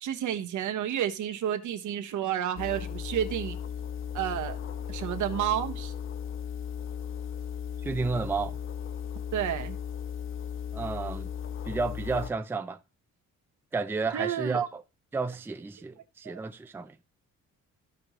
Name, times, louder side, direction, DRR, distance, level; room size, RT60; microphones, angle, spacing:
voice 1, 0.0-3.6 4.1-4.6 4.9-5.9 9.3-9.8 14.1-14.6 16.2-16.4, right 10 dB, 80° right, 1.2 m, -30 dB
sound 1, 2.6-12.3, left 8 dB, 45° left, 0.6 m, -36 dB
voice 2, 7.8-8.6 10.7-11.3 11.7-12.8 13.7-14.8 15.1-17.0, right 4 dB, 10° right, 0.4 m, -31 dB
15.0 x 5.2 x 3.1 m
cardioid pair, 155°, 29 cm